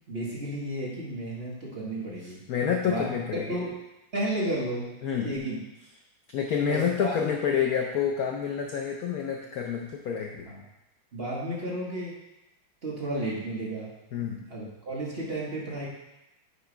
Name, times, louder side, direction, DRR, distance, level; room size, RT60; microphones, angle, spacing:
voice 1, 0.0-2.4 2.8-3.7 4.1-4.9 5.2-5.6 6.6-7.3 10.5-10.6 11.1-12.2 12.8-13.9 14.2-15.9, right 1 dB, 35° right, -5 dB, 1.1 m, -33 dB
voice 2, 2.2-3.6 5.0-5.3 6.3-10.5 14.1-14.5, left 7 dB, 80° left, 1 dB, 0.8 m, -28 dB
8.0 x 3.1 x 4.9 m, 0.94 s
omnidirectional pair, 2.3 m